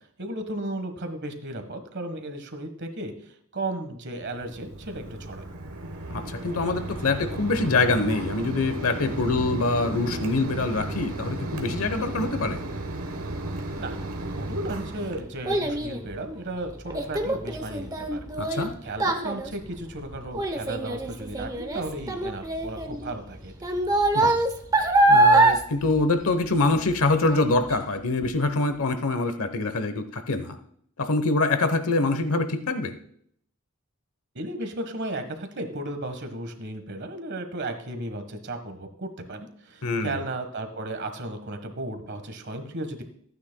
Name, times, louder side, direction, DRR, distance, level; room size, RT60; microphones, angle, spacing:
voice 1, 0.2-3.1 3.5-5.5 13.8-14.0 14.4-18.3 18.8-23.7 34.3-43.0, right 1 dB, 50° right, 7 dB, 1.4 m, -34 dB
Mechanisms, 4.2-15.2, right 1 dB, 75° right, 1.2 m, -34 dB
voice 2, 6.1-12.6 18.4-18.7 24.1-24.3 25.1-30.6 31.0-32.9 39.8-40.2, left 2 dB, 75° left, 9 dB, 1.0 m, -25 dB
Child speech kid speaking, 14.3-26.9 27.3-27.7 28.2-28.3, right 2 dB, 15° right, 0.8 m, -24 dB
14.5 x 9.4 x 2.3 m, 0.65 s
head